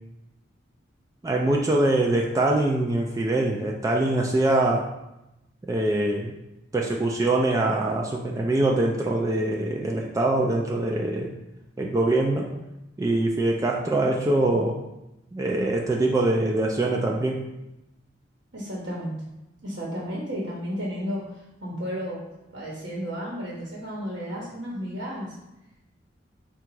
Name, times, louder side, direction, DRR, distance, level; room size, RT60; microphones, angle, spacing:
voice 1, 1.2-4.8 5.7-6.3 6.7-11.3 11.8-12.5 13.0-14.8 15.3-17.4, right 2 dB, 20° right, -1 dB, 0.3 m, -23 dB
voice 2, 18.5-19.2 19.6-22.2 22.5-25.4, equal, 65° right, -5 dB, 0.9 m, -33 dB
3.8 x 2.3 x 4.5 m, 0.92 s
head